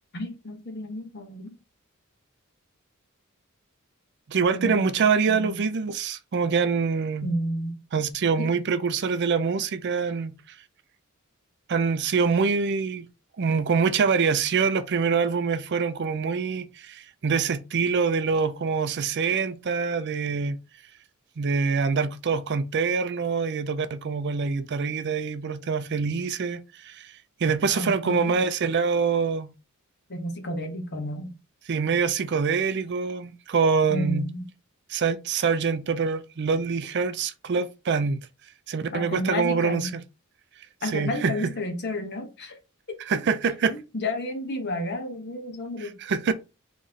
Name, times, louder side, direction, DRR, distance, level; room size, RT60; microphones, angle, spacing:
voice 1, 0.1-1.5 4.5-5.6 7.2-7.8 8.4-8.5 27.7-28.3 30.1-31.3 33.9-34.4 38.9-39.9 40.8-42.6 43.7-46.0, left 1 dB, 50° left, 1.2 m, -31 dB
voice 2, 4.3-7.3 7.9-10.6 11.7-13.1 13.4-20.6 21.4-27.1 27.4-29.5 31.7-34.3 34.9-38.3 38.7-40.0 40.9-41.3 43.1-43.7 45.8-46.3, right 5 dB, 50° right, 0.4 m, -25 dB
4.0 x 3.1 x 3.8 m
head